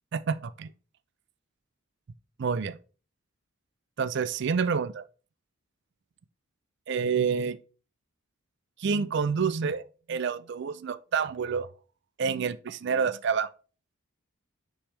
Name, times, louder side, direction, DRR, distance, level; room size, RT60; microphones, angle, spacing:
voice 1, 0.1-0.7 2.4-2.8 4.0-5.0 6.9-7.6 8.8-11.7 12.2-13.5, right 6 dB, 50° right, 0.4 m, -28 dB
8.7 x 3.3 x 3.2 m
head